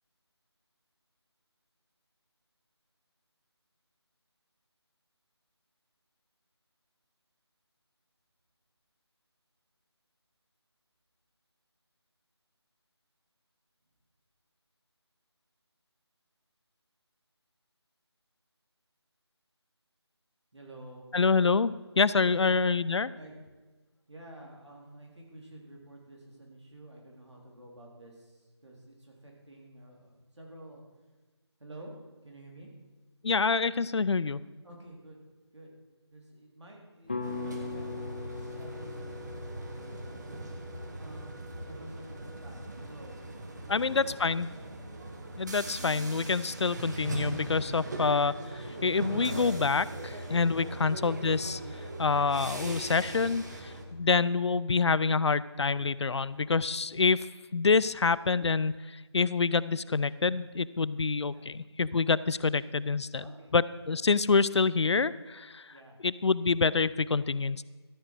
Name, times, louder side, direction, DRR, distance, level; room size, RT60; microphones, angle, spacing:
voice 1, 20.5-21.1 22.2-22.4 23.1-23.3 24.1-30.8 31.6-31.9 32.2-32.7 34.6-35.2 35.5-35.7 36.1-37.9 38.3-40.3 40.9-43.2 43.6-44.2 50.5-50.8 54.3-54.5 61.3-61.5 63.2-63.5 65.7-66.0, right 1 dB, 80° right, -1 dB, 3.5 m, -50 dB
voice 2, 21.1-23.1 33.2-34.4 43.7-44.5 45.4-51.6 52.0-57.3 57.5-63.2 63.5-65.7 66.0-67.7, left 4 dB, 75° left, 19 dB, 0.4 m, -27 dB
sound 1, 37.1-41.4, left 3 dB, 20° left, 0.5 m, -40 dB
sound 2, 37.2-53.8, right 2 dB, 40° right, 1.3 m, -40 dB
13.0 x 7.8 x 4.7 m, 1.3 s
figure-of-eight pair, 165°, 15 cm